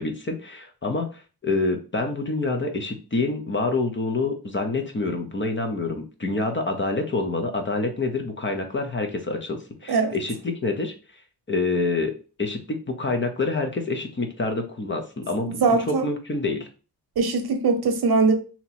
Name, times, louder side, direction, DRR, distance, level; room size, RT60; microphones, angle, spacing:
voice 1, 0.0-10.9 11.5-15.6 15.9-16.7, left 3 dB, 30° left, 0.7 m, -27 dB
voice 2, 15.5-16.1 17.2-18.3, right 4 dB, 90° right, 0.7 m, -21 dB
2.9 x 2.8 x 4.1 m
wide cardioid pair, 135°, 37 cm